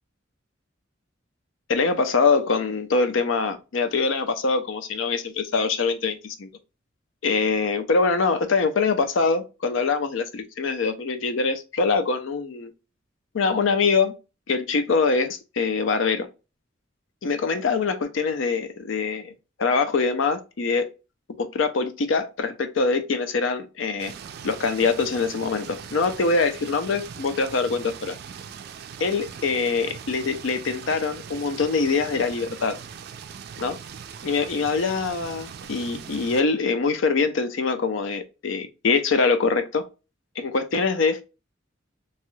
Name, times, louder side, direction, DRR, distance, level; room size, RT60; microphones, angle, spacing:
voice 1, 1.7-6.5 7.2-12.7 13.3-14.1 14.5-16.3 17.2-19.3 19.6-20.9 21.4-24.1 24.4-28.1 29.0-32.8 33.6-33.8 34.2-39.8 40.4-41.2, left 4 dB, 75° left, 0.5 m, -24 dB
sound 1, 24.0-36.4, right 7 dB, 55° right, 0.3 m, -40 dB
3.0 x 2.2 x 3.0 m
head